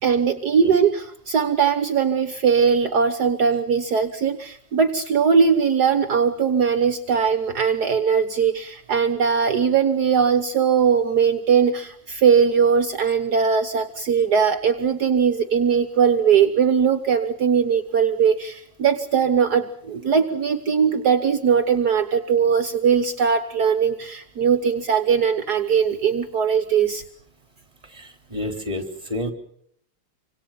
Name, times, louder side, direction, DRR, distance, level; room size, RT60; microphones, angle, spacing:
voice 1, 0.0-27.0, right 6 dB, 60° right, 9 dB, 1.7 m, -20 dB
voice 2, 27.9-29.3, left 1 dB, 20° right, 5 dB, 3.8 m, -30 dB
26.5 x 26.0 x 5.8 m, 0.68 s
omnidirectional pair, 2.0 m